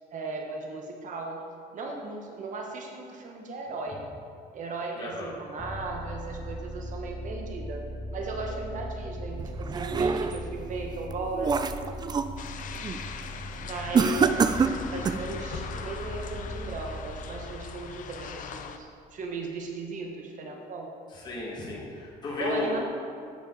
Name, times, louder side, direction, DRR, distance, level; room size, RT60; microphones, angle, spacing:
voice 1, 0.1-1.4 1.7-4.0 4.5-7.8 8.1-11.8 13.6-14.4 14.9-20.9 22.4-22.8, right 3 dB, 50° right, 1 dB, 1.1 m, -36 dB
voice 2, 5.0-5.3 21.2-22.8, left 2 dB, 25° left, -6 dB, 1.9 m, -33 dB
sound 1, 5.6-19.0, equal, 10° left, 1.0 m, -39 dB
sound 2, 9.4-10.5 11.0-12.4 12.7-13.1 13.9-15.3, right 5 dB, 25° right, 0.3 m, -26 dB
sound 3, 12.4-18.8, left 7 dB, 50° left, 0.5 m, -41 dB
8.4 x 6.7 x 3.9 m, 2.3 s
cardioid pair, 110°, 17 cm